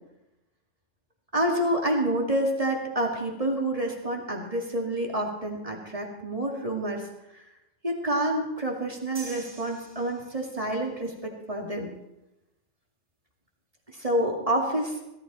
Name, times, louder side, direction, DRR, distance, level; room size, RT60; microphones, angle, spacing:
voice 1, 1.3-7.1 7.8-11.9 13.9-15.0, right 1 dB, 30° right, -1 dB, 2.3 m, -28 dB
sound 1, 9.1-10.7, right 3 dB, 90° right, 2.7 m, -45 dB
17.0 x 13.0 x 4.4 m, 0.91 s
omnidirectional pair, 1.3 m